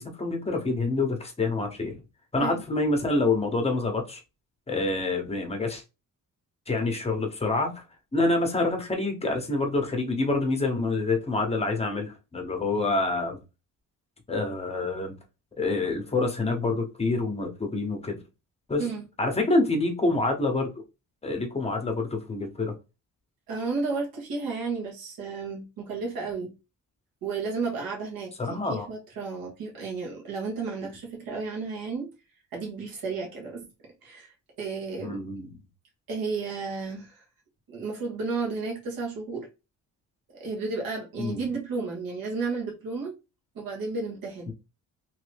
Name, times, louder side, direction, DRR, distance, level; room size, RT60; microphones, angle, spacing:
voice 1, 0.0-2.0 2.3-4.2 4.7-5.8 6.7-7.8 8.1-13.4 14.3-15.1 15.6-18.2 18.7-18.8 19.2-20.7 21.2-22.7 28.4-28.9 35.0-35.5 41.2-41.5 44.5-44.6, left 2 dB, 20° left, 0.8 m, -27 dB
voice 2, 23.5-26.5 27.2-32.1 32.5-33.6 34.0-35.2 36.1-37.2 37.7-39.5 40.4-43.1 43.5-44.5, right 4 dB, 80° right, 1.4 m, -33 dB
3.0 x 2.6 x 3.3 m
cardioid pair, 125°, 35 cm